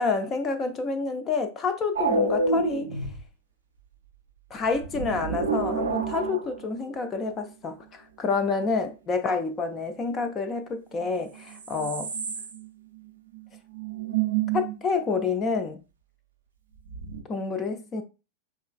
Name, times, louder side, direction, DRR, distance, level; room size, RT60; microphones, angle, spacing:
voice 1, 0.0-2.9 4.5-12.1 14.5-15.8 17.3-18.0, left 4 dB, 25° left, 0.4 m, -28 dB
sound 1, 2.0-3.2 4.7-6.9 11.0-11.1 11.4-12.7 13.0-13.1 13.3-13.4 13.7-14.8 16.9-17.2, right 4 dB, 65° right, 0.5 m, -28 dB
4.7 x 3.1 x 2.2 m
figure-of-eight pair, 90°, 0 cm